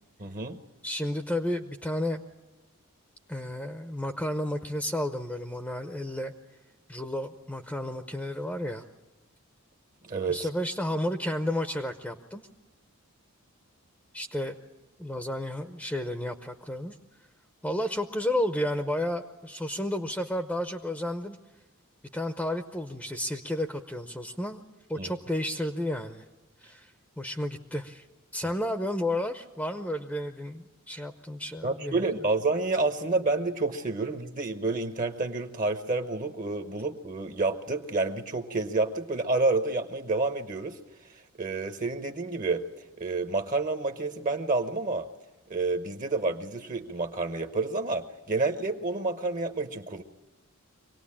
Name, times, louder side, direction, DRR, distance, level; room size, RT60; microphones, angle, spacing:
voice 1, 0.2-0.6 10.0-10.5 25.0-25.1 31.6-40.8 41.1-42.7 43.0-45.1 45.5-50.0, right 3 dB, 35° right, 8 dB, 1.0 m, -29 dB
voice 2, 0.8-2.2 3.3-6.3 6.9-8.8 10.3-12.4 14.1-14.6 15.0-16.9 17.6-21.4 22.1-24.6 24.9-26.2 26.6-26.9 27.2-28.0 28.3-32.0, left 1 dB, 5° left, 6 dB, 0.7 m, -32 dB
24.5 x 18.5 x 8.6 m, 1.1 s
head